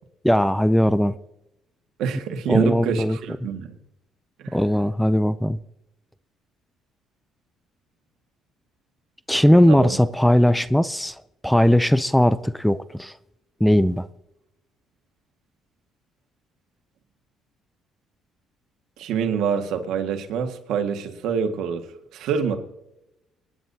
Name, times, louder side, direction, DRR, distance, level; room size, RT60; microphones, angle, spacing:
voice 1, 0.2-1.1 2.5-3.2 4.5-5.6 9.3-11.2 11.4-13.1 13.6-14.1, equal, ahead, 0.5 m, -18 dB
voice 2, 2.0-3.7 4.4-4.6 9.7-10.0 19.0-21.8 22.1-22.6, right 7 dB, 75° right, 1.8 m, -26 dB
25.0 x 10.0 x 2.8 m
cardioid pair, 100°, 0 cm